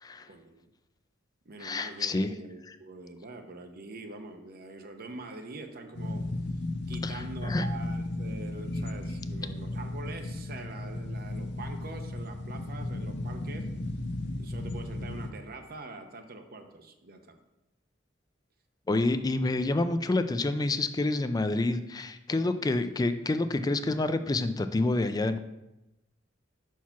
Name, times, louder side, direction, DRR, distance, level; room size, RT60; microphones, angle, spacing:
voice 1, 0.2-0.7 1.5-6.3 6.9-13.7 14.4-17.4 22.6-22.7, right 3 dB, 50° right, 6 dB, 0.8 m, -44 dB
voice 2, 1.6-2.3 7.0-7.7 18.9-25.4, left 2 dB, 20° left, 10 dB, 0.4 m, -28 dB
sound 1, 5.9-15.3, left 2 dB, 60° left, 0.6 m, -35 dB
5.8 x 4.6 x 5.8 m, 0.96 s
head